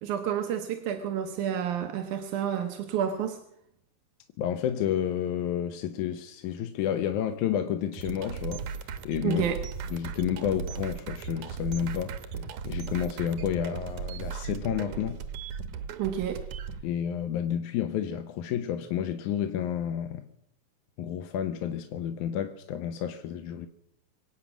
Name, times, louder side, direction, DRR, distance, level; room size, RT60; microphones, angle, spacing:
voice 1, 0.0-3.4 9.2-9.6 16.0-16.4, right 9 dB, 90° right, 2.5 m, -30 dB
voice 2, 4.4-8.7 9.1-9.5 9.9-12.2 12.7-15.2 16.8-20.3 21.0-23.7, left 9 dB, 85° left, 2.3 m, -30 dB
sound 1, 7.9-16.8, right 6 dB, 75° right, 2.3 m, -37 dB
25.5 x 8.9 x 6.0 m
omnidirectional pair, 3.4 m